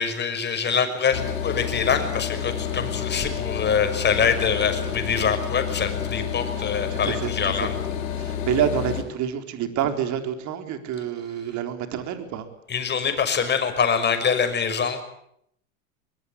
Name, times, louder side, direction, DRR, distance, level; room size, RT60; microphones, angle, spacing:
voice 1, 0.0-7.7 12.7-15.0, left 6 dB, 25° left, 7 dB, 6.0 m, -24 dB
sound 1, 1.1-9.0, left 8 dB, 80° left, 7.8 m, -29 dB
voice 2, 6.9-7.7 8.1-12.5, right 9 dB, 45° right, 7 dB, 4.2 m, -28 dB
23.0 x 23.0 x 8.4 m, 0.72 s
hypercardioid pair, 115°, 40 cm